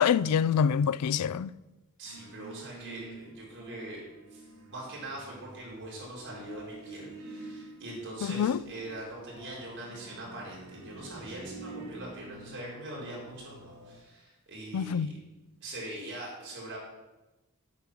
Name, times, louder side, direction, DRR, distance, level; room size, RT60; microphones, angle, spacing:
voice 1, 0.0-1.5 8.4-8.6 14.7-15.1, left 7 dB, 90° left, 0.4 m, -25 dB
voice 2, 2.0-4.0 4.3-4.4 4.7-15.1 15.6-16.8, right 1 dB, 55° right, 4.3 m, -42 dB
sound 1, 2.0-14.0, right 2 dB, 70° right, 3.1 m, -48 dB
8.5 x 8.3 x 6.1 m
head